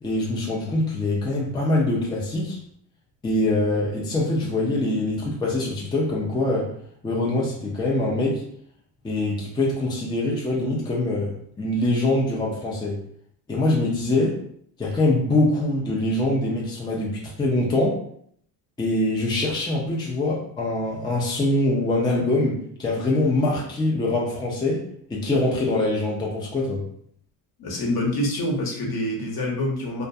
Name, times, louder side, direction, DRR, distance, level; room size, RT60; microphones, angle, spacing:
voice 1, 0.0-2.6 3.2-6.7 7.0-8.4 9.0-11.3 11.6-13.0 13.5-14.4 14.8-18.0 18.8-24.8 25.1-26.8, left 2 dB, 10° left, -3 dB, 0.5 m, -23 dB
voice 2, 27.6-30.0, left 1 dB, 50° left, -1 dB, 1.0 m, -26 dB
2.3 x 2.1 x 2.6 m, 0.64 s
supercardioid pair, 85°, 48 cm